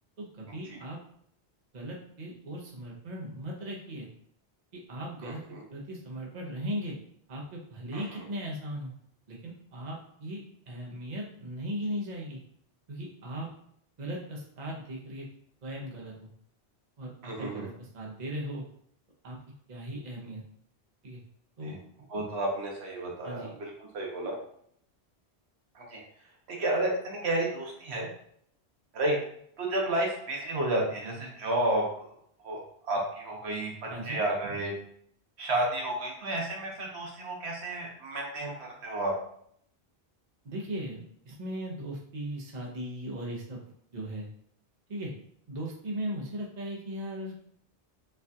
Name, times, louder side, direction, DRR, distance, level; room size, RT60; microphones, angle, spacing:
voice 1, 0.2-1.0 1.7-4.1 4.7-5.4 5.7-7.0 7.3-8.9 9.3-10.4 10.7-12.4 12.9-13.5 14.0-15.3 15.6-16.3 17.0-18.6 19.2-19.4 19.7-20.4 21.0-21.2 21.6-21.7 23.2-23.5 33.9-34.2 40.4-43.6 43.9-44.3 44.9-45.1 45.5-47.3, equal, 45° right, -2 dB, 0.9 m, -38 dB
voice 2, 5.2-5.6 7.9-8.0 17.2-17.7 21.7-21.8 22.1-24.3 25.7-26.0 26.5-28.1 28.9-29.2 29.6-31.9 32.4-33.7 34.0-34.7 35.4-39.1, right 1 dB, 80° right, -1 dB, 1.2 m, -31 dB
4.2 x 2.4 x 2.7 m, 0.65 s
omnidirectional pair, 1.1 m